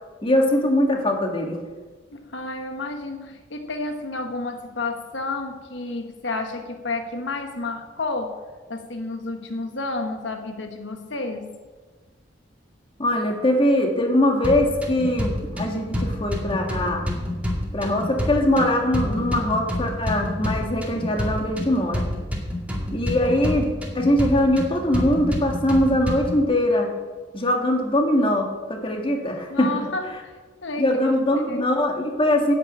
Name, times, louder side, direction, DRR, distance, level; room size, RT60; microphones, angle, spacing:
voice 1, 0.2-1.6 13.0-17.1 17.7-22.0 22.9-23.7 23.9-26.9 27.3-29.9 30.8-32.5, left 1 dB, 30° left, 2 dB, 1.9 m, -22 dB
voice 2, 2.1-8.4 8.7-11.6 29.5-30.3 30.6-31.2 31.5-31.6, left 3 dB, 85° left, 5 dB, 1.3 m, -31 dB
sound 1, 14.4-26.4, left 1 dB, 10° right, 2.4 m, -28 dB
9.8 x 9.3 x 8.8 m, 1.4 s
head